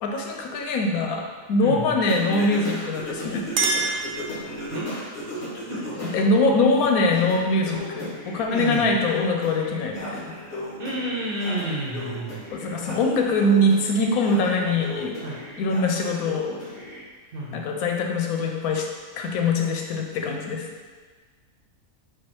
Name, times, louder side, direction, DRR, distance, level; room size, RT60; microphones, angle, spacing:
voice 1, 0.0-1.2 1.5-3.5 6.0-10.2 12.5-15.2 15.6-16.6 17.5-18.9 19.2-20.6, left 2 dB, 90° left, 2 dB, 1.1 m, -23 dB
voice 2, 1.6-2.0 4.7-4.9 5.3-5.4 5.7-6.1 8.5-9.0 10.8-12.4 15.2-15.4 17.3-17.6, right 1 dB, 50° right, -5 dB, 0.8 m, -30 dB
Singing, 2.1-6.2 6.6-17.0, left 1 dB, 50° left, 1.4 m, -36 dB
Chink clink, 3.0-4.9, right 4 dB, 85° right, 1.0 m, -28 dB
4.8 x 2.3 x 4.4 m, 1.5 s
omnidirectional pair, 1.5 m